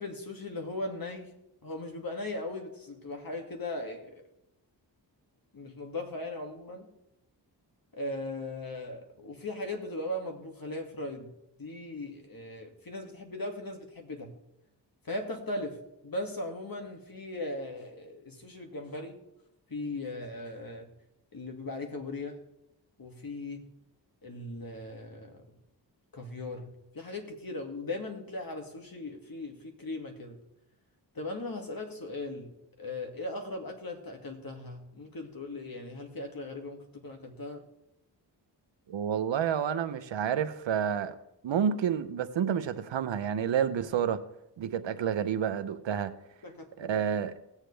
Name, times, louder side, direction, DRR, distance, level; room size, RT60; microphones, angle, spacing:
voice 1, 0.0-1.3 1.6-4.2 5.5-6.9 7.9-11.3 11.6-14.3 15.0-19.2 19.7-20.9 21.3-22.4 23.0-23.7 24.2-25.5 26.1-30.4 31.1-32.5 32.8-37.6 46.4-47.0, left 2 dB, 50° left, 3 dB, 2.2 m, -38 dB
voice 2, 38.9-41.1 41.4-44.2 44.6-46.1 46.8-47.3, right 8 dB, 85° right, 11 dB, 0.8 m, -29 dB
18.0 x 7.4 x 3.4 m, 0.84 s
cardioid pair, 50°, 44 cm